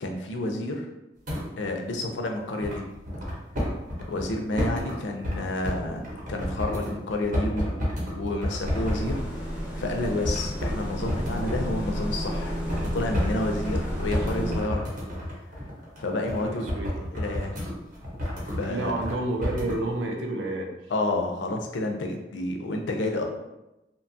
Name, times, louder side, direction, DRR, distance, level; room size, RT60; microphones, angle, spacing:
voice 1, 0.0-0.9 1.6-2.8 4.1-6.0 6.3-7.9 8.1-9.2 9.7-14.8 16.0-16.7 17.0-17.6 18.4-19.0 20.9-23.2, left 2 dB, 85° left, 3 dB, 0.4 m, -30 dB
sound 1, 1.3-1.5 1.9-2.0 2.6-5.0 5.2-5.4 5.6-9.2 9.8-9.9 10.2-19.2 19.4-19.8, equal, 45° right, 0.7 m, -31 dB
sound 2, 8.6-14.6, equal, 10° right, 0.5 m, -32 dB
voice 2, 16.4-17.0 18.7-20.7, right 2 dB, 90° right, 2 dB, 0.5 m, -30 dB
2.7 x 2.2 x 2.6 m, 0.95 s
head